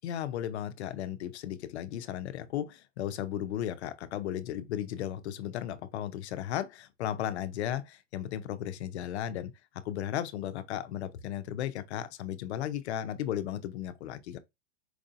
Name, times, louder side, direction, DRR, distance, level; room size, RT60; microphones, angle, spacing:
voice 1, 0.0-14.4, left 11 dB, 60° left, 0.5 m, -35 dB
4.7 x 2.6 x 2.4 m
supercardioid pair, 170°, 37 cm